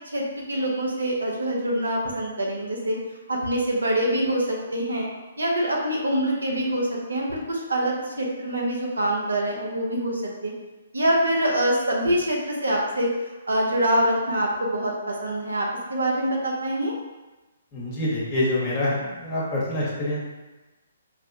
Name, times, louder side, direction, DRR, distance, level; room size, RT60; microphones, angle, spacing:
voice 1, 0.1-3.0 3.3-5.1 5.4-10.5 10.9-13.1 13.5-16.9, right 1 dB, 80° right, -2 dB, 0.8 m, -25 dB
voice 2, 17.7-20.2, left 1 dB, 35° left, -6 dB, 1.3 m, -26 dB
5.3 x 2.2 x 2.7 m, 1.1 s
figure-of-eight pair, 135°, 0 cm